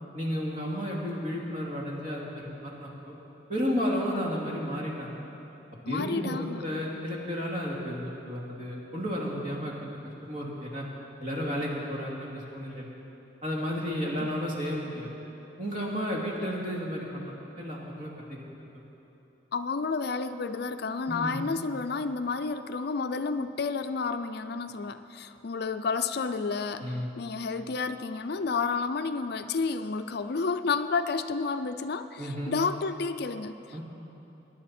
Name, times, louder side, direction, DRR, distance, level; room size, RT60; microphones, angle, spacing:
voice 1, 0.1-3.2 3.5-5.1 5.9-10.8 11.2-12.9 13.4-15.1 15.6-18.4 21.1-21.4 26.8-27.1 32.2-32.6 33.7-33.8, equal, 45° right, -3 dB, 2.6 m, -33 dB
voice 2, 5.9-6.6 14.2-14.3 19.5-33.6, left 4 dB, 60° left, 10 dB, 0.5 m, -31 dB
22.0 x 10.5 x 4.4 m, 3.0 s
head